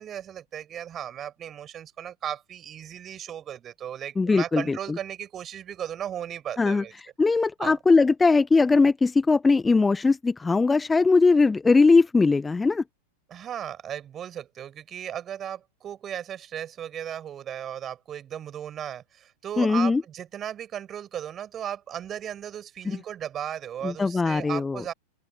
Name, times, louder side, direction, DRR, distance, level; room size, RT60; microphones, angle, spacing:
voice 1, 0.0-6.9 7.6-7.8 13.3-24.9, right 10 dB, 25° right, 6.9 m, -36 dB
voice 2, 4.2-5.0 6.6-6.8 7.2-12.8 19.6-20.0 22.9-23.0 23.8-24.8, left 4 dB, 10° left, 1.1 m, -20 dB
open air
figure-of-eight pair, 90°, 0 cm